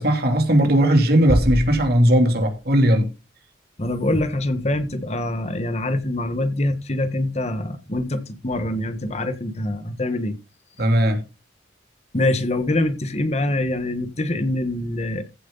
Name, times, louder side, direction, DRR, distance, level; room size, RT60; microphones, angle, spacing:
voice 1, 0.0-3.1 10.8-11.2, equal, 55° right, 3.0 m, -17 dB
sound 1, 1.3-3.2, right 1 dB, 15° right, 0.5 m, -27 dB
voice 2, 3.8-10.4 12.1-15.2, left 1 dB, 35° left, 1.3 m, -24 dB
15.0 x 7.9 x 3.9 m
head